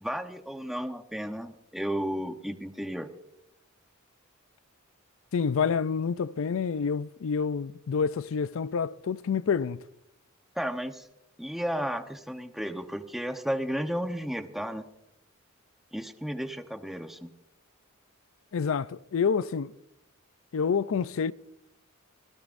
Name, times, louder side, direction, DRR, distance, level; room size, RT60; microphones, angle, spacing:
voice 1, 0.0-3.1 10.5-11.1 11.4-14.8 15.9-17.3, equal, ahead, 0.9 m, -33 dB
voice 2, 5.3-9.8 18.5-19.7 20.5-21.3, left 6 dB, 70° left, 0.4 m, -28 dB
26.0 x 16.5 x 2.6 m
head